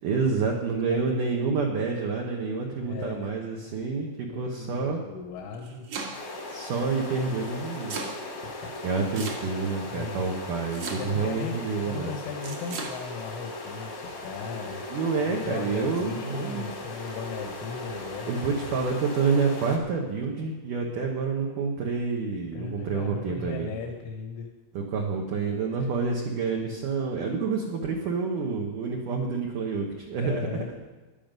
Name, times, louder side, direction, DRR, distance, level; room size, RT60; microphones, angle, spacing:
voice 1, 0.0-5.0 6.5-8.0 8.8-12.1 14.9-16.7 18.3-23.7 24.7-30.5, right 4 dB, 70° right, 0 dB, 2.0 m, -28 dB
voice 2, 0.7-1.0 2.8-3.3 3.6-3.7 4.3-5.9 6.7-6.9 8.6-8.7 9.9-10.2 11.0-11.6 11.8-14.8 15.3-18.5 22.5-24.5 30.2-30.7, left 4 dB, 85° left, 2 dB, 3.9 m, -37 dB
Domestic sounds home sounds, 5.4-6.4 7.4-8.2 9.1-9.8 10.7-11.3 12.4-12.9, right 4 dB, 50° right, 2.2 m, -36 dB
sound 1, 6.1-19.8, left 2 dB, 50° left, 1.3 m, -38 dB
14.5 x 11.0 x 5.3 m, 1.3 s
omnidirectional pair, 5.5 m